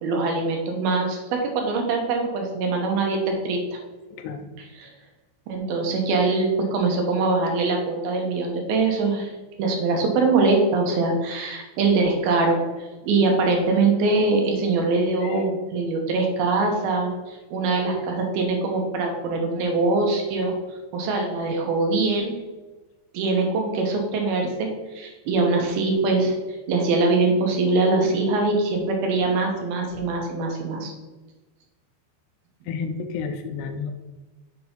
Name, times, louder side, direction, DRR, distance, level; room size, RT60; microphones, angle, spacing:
voice 1, 0.0-1.2 1.5-3.6 4.8-4.9 5.5-9.3 9.6-12.6 13.0-20.5 20.9-22.4 23.1-24.7 24.9-26.3 26.7-30.9, right 3 dB, 70° right, 2 dB, 2.5 m, -23 dB
voice 2, 4.1-4.5 15.2-15.5 17.9-18.1 32.7-33.9, left 5 dB, 80° left, 7 dB, 2.5 m, -31 dB
7.0 x 4.7 x 5.3 m, 1.1 s
omnidirectional pair, 5.4 m